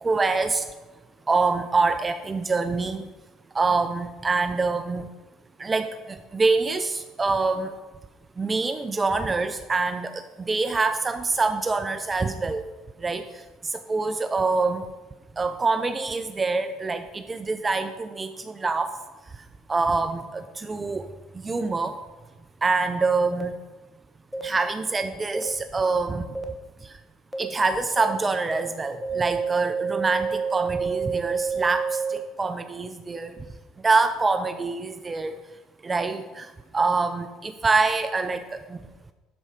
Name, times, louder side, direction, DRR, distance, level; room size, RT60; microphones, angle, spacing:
voice 1, 0.0-0.6 1.3-3.0 3.5-5.1 5.6-7.7 8.4-12.7 13.0-13.2 13.7-14.8 15.4-19.0 19.7-21.1 21.3-22.0 22.6-23.6 24.4-26.3 27.4-33.4 33.8-35.4 35.8-38.8, right 3 dB, 25° right, 9 dB, 0.6 m, -25 dB
sound 1, 23.3-23.4 24.3-24.4 25.3-25.4 26.4-26.5 27.3-27.4 28.0-28.1 28.5-28.6 29.0-32.2, right 5 dB, ahead, 1.2 m, -28 dB
12.0 x 4.7 x 5.7 m, 1.2 s
supercardioid pair, 95°, 0 cm